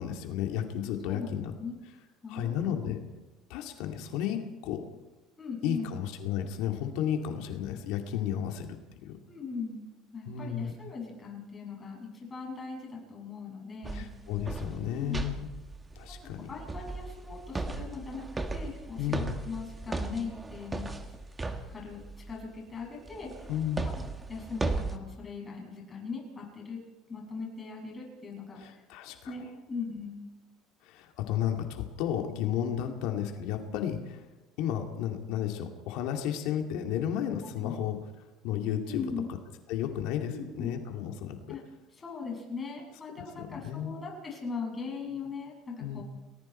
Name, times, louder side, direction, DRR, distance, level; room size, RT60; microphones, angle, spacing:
voice 1, 0.0-1.5 2.3-3.0 3.5-4.8 5.6-8.8 9.1-9.2 10.3-10.7 13.9-15.5 16.0-16.4 19.0-19.4 23.5-23.9 28.6-29.3 30.8-34.2 34.6-38.0 38.4-39.0 39.7-41.4 43.4-43.9 45.8-46.0, left 10 dB, 75° left, 4 dB, 2.4 m, -33 dB
voice 2, 1.1-1.8 2.2-2.9 5.4-5.9 9.3-9.8 10.1-14.1 14.8-15.2 16.1-16.2 16.5-18.2 18.5-20.9 21.7-22.0 22.3-23.5 23.8-24.0 24.3-26.8 27.1-28.7 29.3-30.3 37.6-37.8 38.9-39.3 40.3-40.7 41.5-41.6 41.9-46.0, left 5 dB, 20° left, -1 dB, 7.0 m, -39 dB
sound 1, 13.8-22.5 23.1-25.0, right 3 dB, 15° right, 1.5 m, -37 dB
30.0 x 19.5 x 4.5 m, 1.2 s
cardioid pair, 150°, 0 cm